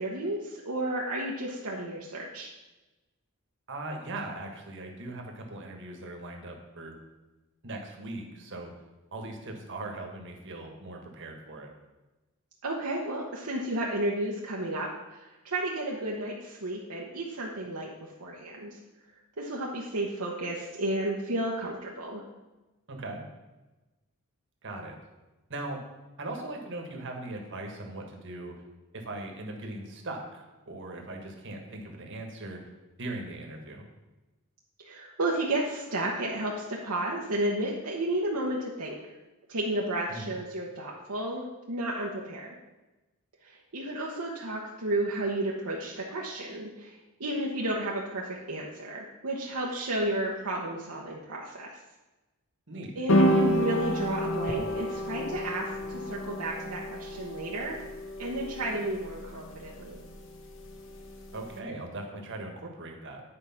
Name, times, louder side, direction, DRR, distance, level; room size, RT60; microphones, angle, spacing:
voice 1, 0.0-2.5 12.6-18.8 19.4-22.2 34.8-39.0 39.5-42.5 43.4-51.8 52.9-57.8 58.2-60.0, right 1 dB, 70° right, -3 dB, 1.1 m, -32 dB
voice 2, 3.7-7.0 7.6-8.7 9.1-11.7 22.9-23.2 24.6-25.0 25.5-25.8 26.2-28.5 28.9-32.7 33.0-33.9 40.1-40.3 52.7-52.9 61.3-63.2, right 2 dB, 55° right, 2 dB, 1.6 m, -39 dB
sound 1, 53.1-61.5, equal, 60° left, 1.1 m, -30 dB
10.0 x 4.8 x 5.9 m, 1.1 s
head